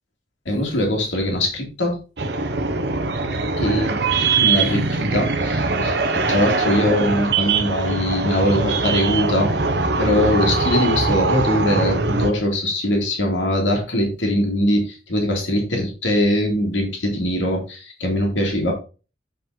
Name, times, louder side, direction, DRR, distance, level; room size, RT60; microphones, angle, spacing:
voice 1, 0.5-2.0 3.6-3.9 4.4-6.0 6.3-9.5 10.0-18.7, left 1 dB, 85° left, 0 dB, 2.5 m, -21 dB
sound 1, 2.2-12.3, right 3 dB, 65° right, 1.0 m, -22 dB
7.8 x 5.2 x 4.0 m, 0.33 s
head